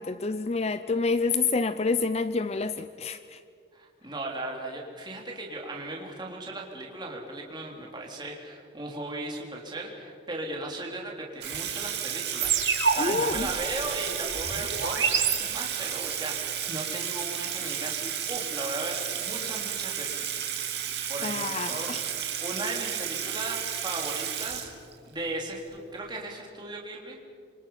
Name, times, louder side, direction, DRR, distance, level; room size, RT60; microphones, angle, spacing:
voice 1, 0.0-3.4 13.0-13.5 21.2-22.0, left 4 dB, 35° left, 12 dB, 0.5 m, -28 dB
voice 2, 3.7-20.2 20.6-20.7 21.1-21.9 22.2-24.7 25.1-27.2, right 2 dB, 25° right, -1 dB, 3.5 m, -37 dB
Water tap faucet / Sink (filling or washing), 11.4-25.1, right 9 dB, 60° right, 2.5 m, -33 dB
sound 1, 12.4-16.1, right 6 dB, 80° right, 3.0 m, -28 dB
27.0 x 25.5 x 5.8 m, 2.3 s
head